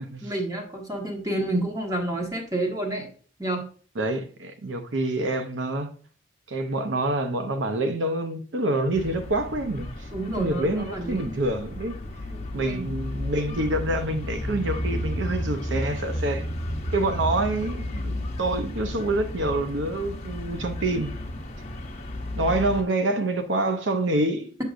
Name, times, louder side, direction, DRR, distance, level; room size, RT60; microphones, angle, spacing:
voice 1, 0.2-3.1 3.4-3.7 10.1-11.4 12.3-12.9, right 1 dB, 20° right, 1.3 m, -29 dB
voice 2, 4.0-5.9 6.5-12.0 12.5-16.5 16.9-21.1 22.4-24.5, right 2 dB, 75° right, 0.7 m, -27 dB
sound 1, 8.9-22.8, left 1 dB, 35° left, 0.9 m, -33 dB
6.8 x 6.4 x 2.5 m
head